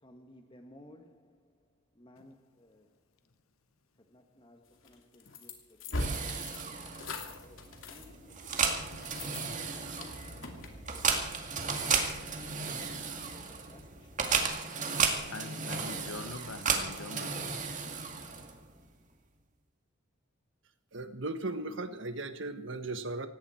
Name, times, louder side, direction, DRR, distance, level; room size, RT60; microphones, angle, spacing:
voice 1, 0.0-1.5 2.0-2.9 4.1-6.9 7.2-11.0 12.1-16.0, left 1 dB, 25° left, 1.9 m, -59 dB
sound 1, 4.9-12.5, left 1 dB, 65° left, 2.6 m, -42 dB
sound 2, 6.0-18.7, right 5 dB, 35° right, 2.2 m, -34 dB
voice 2, 15.3-17.6, left 3 dB, 85° left, 1.1 m, -43 dB
voice 3, 20.9-23.3, right 2 dB, 60° right, 1.4 m, -37 dB
18.5 x 17.0 x 4.5 m
head